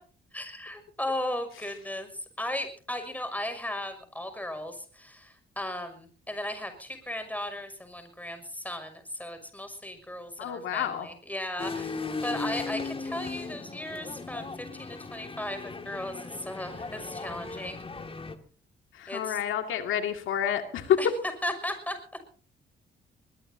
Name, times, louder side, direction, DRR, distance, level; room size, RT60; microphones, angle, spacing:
voice 1, 0.3-17.8 19.1-19.4 21.0-21.1 21.4-22.0, left 1 dB, 10° left, 8 dB, 6.2 m, -36 dB
voice 2, 10.4-11.1 18.9-21.0, left 9 dB, 80° left, 6 dB, 2.2 m, -28 dB
sound 1, 11.6-18.4, left 4 dB, 25° left, 2.2 m, -37 dB
22.0 x 21.5 x 2.8 m, 0.42 s
cardioid pair, 90°, 20 cm